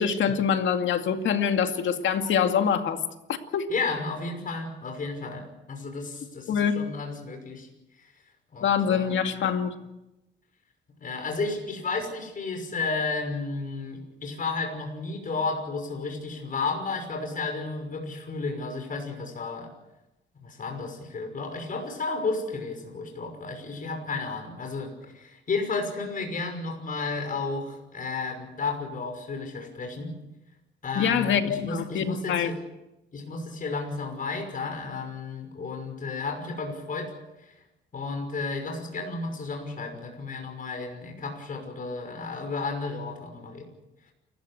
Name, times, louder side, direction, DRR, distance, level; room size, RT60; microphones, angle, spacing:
voice 1, 0.0-3.0 3.3-3.7 6.5-6.9 8.6-9.7 31.0-32.5, left 7 dB, 70° left, 2.3 m, -25 dB
voice 2, 3.7-7.7 8.5-9.2 11.0-19.7 20.4-30.1 30.8-32.6 33.1-37.1 37.4-37.6 37.9-43.7, left 3 dB, 45° left, 6.0 m, -32 dB
29.0 x 15.0 x 8.2 m
cardioid pair, 90°, 20 cm